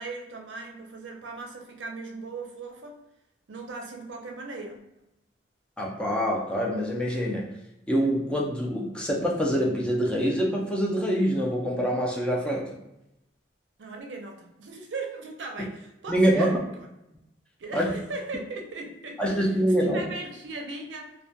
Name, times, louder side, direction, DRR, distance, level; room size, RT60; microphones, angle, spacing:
voice 1, 0.0-3.0 3.5-4.8 13.8-16.9 17.6-19.5 19.8-21.1, right 3 dB, 75° right, 2 dB, 0.5 m, -38 dB
voice 2, 5.8-7.5 7.9-12.7 16.1-16.6 17.7-18.0 19.2-20.1, equal, 5° left, -3 dB, 0.4 m, -25 dB
2.2 x 2.1 x 2.6 m, 0.89 s
head